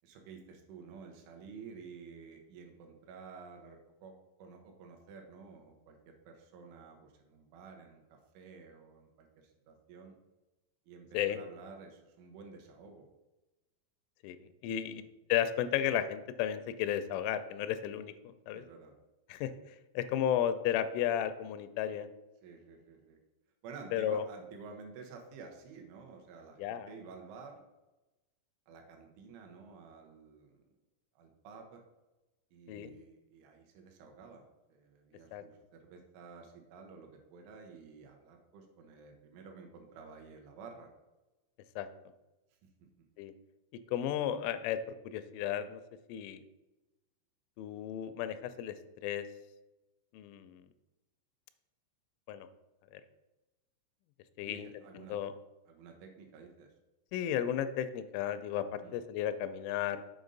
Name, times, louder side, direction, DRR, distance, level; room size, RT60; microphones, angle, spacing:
voice 1, 0.0-10.2 10.9-13.1 14.9-15.0 18.5-18.9 20.1-20.2 22.4-23.2 23.6-27.6 28.7-30.6 31.2-31.8 32.5-40.9 43.0-43.1 54.4-55.2 55.7-56.7 58.8-59.0, right 5 dB, 80° right, 3 dB, 3.3 m, -52 dB
voice 2, 14.6-15.0 15.3-18.6 19.3-19.5 20.0-22.1 23.9-24.2 26.6-26.9 32.7-32.9 35.3-35.4 41.8-41.9 43.2-43.3 43.9-45.8 46.1-46.4 47.6-48.7 49.0-49.2 50.1-50.6 52.3-52.5 52.9-53.0 54.4-54.7 54.9-55.3 57.1-60.0, left 10 dB, 85° left, 11 dB, 3.0 m, -33 dB
8.0 x 5.2 x 3.9 m, 1.0 s
omnidirectional pair, 5.5 m